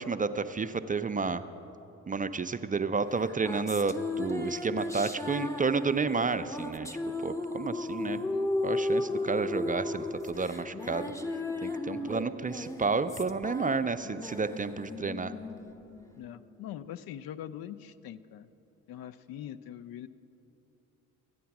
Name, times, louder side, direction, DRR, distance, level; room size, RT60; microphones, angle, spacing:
voice 1, 0.0-1.4 2.1-6.9 7.2-8.2 8.6-11.1 11.6-15.3, right 4 dB, 20° right, 9 dB, 0.4 m, -31 dB
sound 1, 3.2-16.8, left 2 dB, 5° left, 0.8 m, -35 dB
voice 2, 8.0-8.5 11.9-12.2 16.2-18.5 18.9-20.1, left 11 dB, 60° left, 14 dB, 0.6 m, -43 dB
13.5 x 9.3 x 5.9 m, 3.0 s
hypercardioid pair, 50°, 41 cm